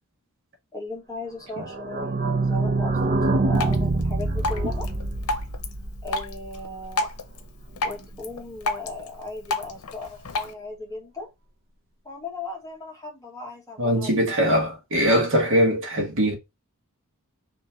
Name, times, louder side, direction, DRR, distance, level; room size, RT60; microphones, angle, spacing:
voice 1, 0.7-2.2 2.4-4.9 6.0-7.1 7.8-11.3 12.0-14.5, left 2 dB, 15° left, 1.6 m, -37 dB
sound 1, 1.6-7.1 7.4-7.5 7.7-7.8 8.1-8.2, right 2 dB, 45° right, 0.7 m, -25 dB
Drip, 3.5-10.5, left 2 dB, 80° left, 0.8 m, -32 dB
voice 2, 13.8-16.4, equal, 65° right, 1.3 m, -21 dB
3.5 x 2.9 x 4.2 m
head